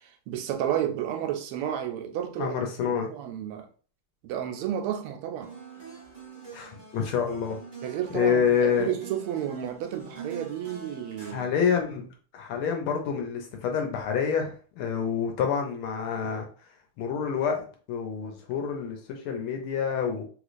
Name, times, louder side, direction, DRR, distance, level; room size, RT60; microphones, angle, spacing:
voice 1, 0.3-2.5 2.8-3.7 4.2-5.5 7.8-8.5 8.8-11.5, right 10 dB, 90° right, 1.5 m, -31 dB
voice 2, 2.4-3.1 6.5-7.6 8.1-8.9 11.3-12.1 12.3-16.5 17.0-17.6 17.9-20.2, left 7 dB, 80° left, 1.5 m, -27 dB
sound 1, 5.4-11.3, right 4 dB, 40° right, 0.6 m, -45 dB
3.4 x 3.0 x 2.5 m
omnidirectional pair, 2.4 m